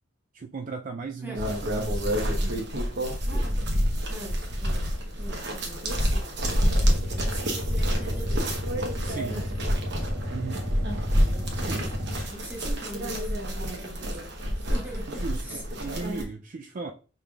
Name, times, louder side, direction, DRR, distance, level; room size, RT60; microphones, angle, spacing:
voice 1, 0.3-2.7 9.0-9.5 10.3-10.7 11.5-12.2 12.6-12.9 15.1-16.9, right 4 dB, 45° right, 0.4 m, -37 dB
sound 1, 1.3-16.2, equal, 60° right, 1.0 m, -28 dB
voice 2, 4.1-4.9 5.2-6.5 7.1-8.5 9.0-9.8 10.7-11.9 12.3-15.6, right 1 dB, 10° right, 1.4 m, -43 dB
sound 2, 6.8-12.3, left 1 dB, 80° right, 1.3 m, -33 dB
5.5 x 3.3 x 2.3 m
head